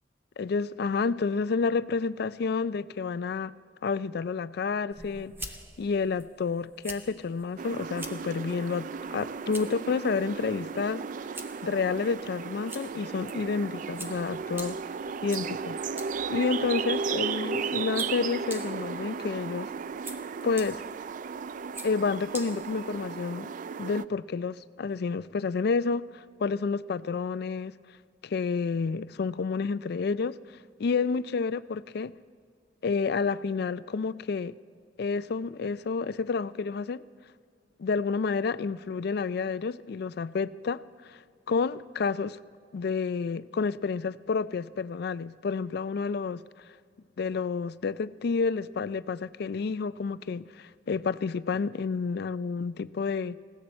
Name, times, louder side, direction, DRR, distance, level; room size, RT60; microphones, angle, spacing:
voice 1, 0.4-3.6 3.8-5.3 5.8-11.1 11.6-14.8 15.2-15.8 16.3-19.7 20.4-20.8 21.8-23.5 23.8-27.8 28.2-30.4 30.8-32.1 32.8-34.5 35.0-37.0 37.8-41.2 41.5-42.4 42.7-46.4 47.2-53.4, left 5 dB, 60° left, 0.4 m, -30 dB
sound 1, 4.9-23.2, right 1 dB, 15° right, 1.0 m, -47 dB
sound 2, 7.6-24.1, right 5 dB, 45° right, 0.3 m, -35 dB
20.0 x 16.5 x 4.3 m
head